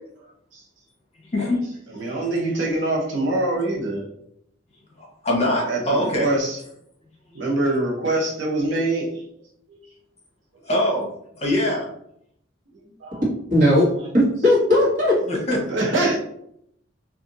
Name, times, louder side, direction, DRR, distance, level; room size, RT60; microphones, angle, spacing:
voice 1, 1.9-4.1 5.7-6.6 7.3-9.2 9.7-9.8 13.0-13.2 15.5-16.2, right 2 dB, 80° right, -3 dB, 0.9 m, -24 dB
voice 2, 5.0-6.3 10.7-11.1 11.4-11.9 15.3-15.6, left 1 dB, 35° left, -2 dB, 0.9 m, -22 dB
voice 3, 13.5-13.9 14.1-15.2, left 1 dB, 45° right, -6 dB, 1.5 m, -17 dB
2.6 x 2.5 x 3.9 m, 0.72 s
head